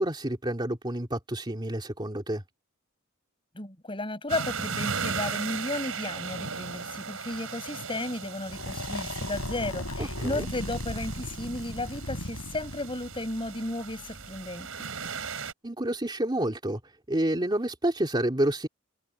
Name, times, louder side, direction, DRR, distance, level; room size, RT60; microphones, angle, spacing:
voice 1, 0.0-2.4 10.0-10.5 15.6-16.8 17.1-18.7, right 1 dB, 20° right, 3.1 m, -29 dB
voice 2, 3.5-14.9, left 2 dB, 25° left, 7.5 m, -34 dB
sound 1, 4.3-15.5, right 6 dB, 80° right, 4.8 m, -37 dB
sound 2, 8.5-14.4, left 1 dB, 90° left, 6.5 m, -37 dB
head